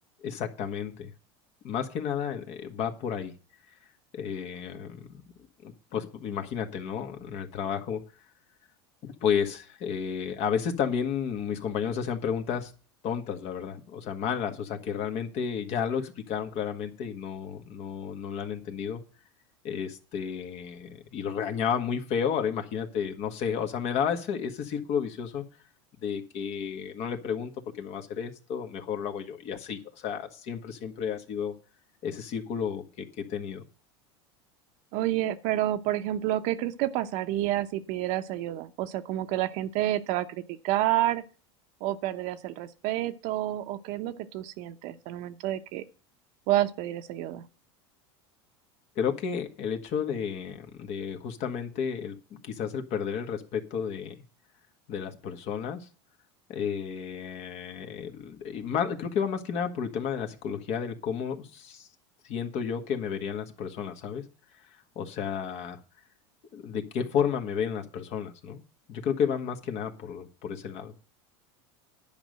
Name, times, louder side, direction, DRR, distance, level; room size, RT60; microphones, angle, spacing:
voice 1, 0.2-1.1 1.6-3.3 4.1-5.2 5.6-8.0 9.0-12.7 13.0-19.0 19.6-25.4 26.0-27.5 27.8-31.5 32.0-33.6 48.9-52.2 52.4-54.1 54.9-55.9 56.5-61.9 62.2-64.2 64.9-65.8 66.5-68.6 68.9-70.9, left 7 dB, 50° left, 1.6 m, -32 dB
voice 2, 34.9-41.2 41.8-45.8 46.5-47.4, right 14 dB, 60° right, 0.9 m, -29 dB
10.5 x 5.3 x 7.8 m
supercardioid pair, 120°, 14 cm